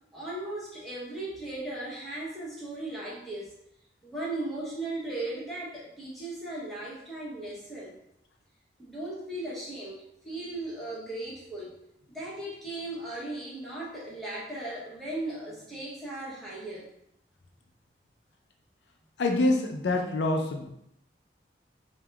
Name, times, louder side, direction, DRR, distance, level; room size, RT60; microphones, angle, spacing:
voice 1, 0.1-3.5 4.0-8.0 8.8-11.7 12.1-16.9, right 2 dB, ahead, -7 dB, 0.9 m, -37 dB
voice 2, 19.2-20.7, left 2 dB, 75° left, 3 dB, 0.4 m, -26 dB
3.5 x 2.2 x 3.4 m, 0.74 s
head